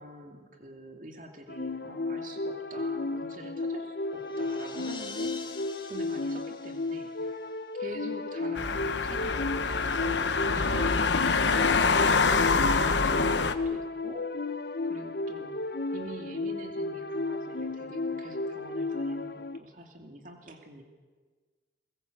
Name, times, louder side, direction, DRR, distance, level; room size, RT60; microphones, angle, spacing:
voice 1, 0.0-5.4 5.8-7.4 7.7-14.5 14.8-15.6 15.9-20.8, right 1 dB, 45° right, 4 dB, 2.5 m, -45 dB
sound 1, 1.5-19.6, left 3 dB, 60° left, 0.8 m, -34 dB
sound 2, 3.6-8.0, left 4 dB, 25° left, 1.8 m, -47 dB
sound 3, 8.6-13.5, left 4 dB, 85° left, 1.2 m, -25 dB
23.5 x 20.5 x 7.9 m, 1.4 s
head